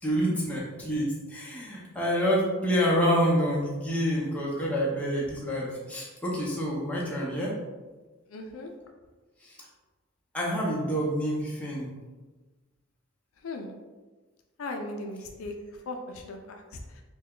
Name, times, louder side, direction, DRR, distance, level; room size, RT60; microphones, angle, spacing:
voice 1, 0.0-7.5 9.4-9.6 10.3-11.9, equal, 5° left, -5 dB, 0.7 m, -27 dB
voice 2, 8.3-8.7 13.4-13.7 14.6-15.5 15.9-16.6, left 2 dB, 70° left, 3 dB, 0.4 m, -37 dB
3.3 x 2.2 x 3.7 m, 1.3 s
head